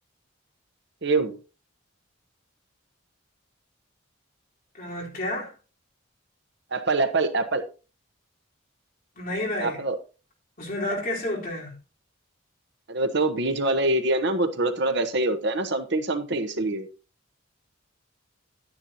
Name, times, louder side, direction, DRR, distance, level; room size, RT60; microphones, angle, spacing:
voice 1, 1.0-1.4 6.7-7.6 9.6-10.0 12.9-16.9, right 2 dB, 55° right, 1.1 m, -24 dB
voice 2, 4.7-5.5 9.2-9.8 10.6-11.8, left 1 dB, 45° left, 3.8 m, -30 dB
11.5 x 9.8 x 2.8 m
head